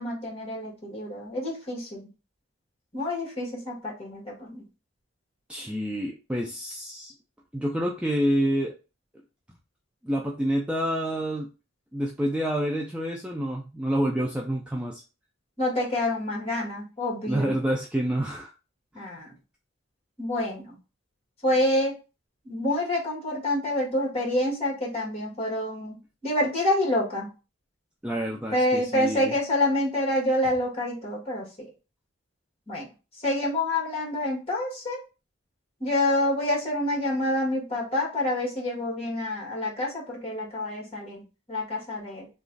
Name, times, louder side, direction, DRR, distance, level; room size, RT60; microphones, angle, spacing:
voice 1, 0.0-2.1 2.9-4.6 15.6-17.5 18.9-19.3 20.2-20.8 21.4-21.9 22.4-26.0 26.2-27.3 28.5-31.7 32.7-32.9 33.2-35.0 35.8-41.2 41.5-42.3, left 1 dB, 30° left, -3 dB, 1.5 m, -27 dB
voice 2, 5.5-7.1 7.5-8.7 10.0-11.5 11.9-15.0 17.3-18.5 28.0-29.3, equal, 5° right, -1 dB, 0.3 m, -28 dB
3.0 x 2.3 x 3.8 m, 0.31 s
head